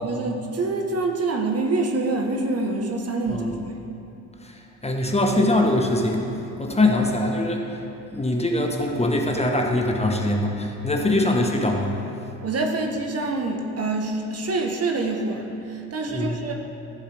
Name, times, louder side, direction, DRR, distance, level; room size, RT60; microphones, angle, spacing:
voice 1, 0.0-3.5 3.7-3.9 12.4-16.5, right 3 dB, 35° right, 2 dB, 1.3 m, -26 dB
voice 2, 4.8-6.2 6.6-7.8 8.1-11.9 16.1-16.4, left 1 dB, 15° left, 1 dB, 1.3 m, -22 dB
15.5 x 7.2 x 3.5 m, 2.8 s
hypercardioid pair, 55°, 42 cm